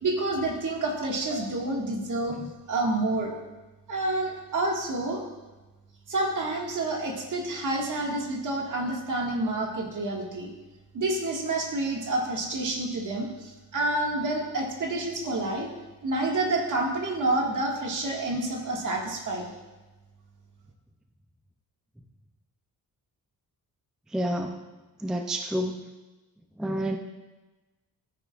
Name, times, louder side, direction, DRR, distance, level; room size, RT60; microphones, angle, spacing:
voice 1, 0.0-2.4 2.7-3.3 3.9-5.2 6.1-10.5 10.9-15.7 16.0-19.5, right 2 dB, 55° right, -1 dB, 1.9 m, -28 dB
voice 2, 24.1-24.6 25.0-25.8 26.6-27.0, right 1 dB, ahead, 3 dB, 0.4 m, -29 dB
15.5 x 9.2 x 2.4 m, 1.2 s
wide cardioid pair, 165°, 37 cm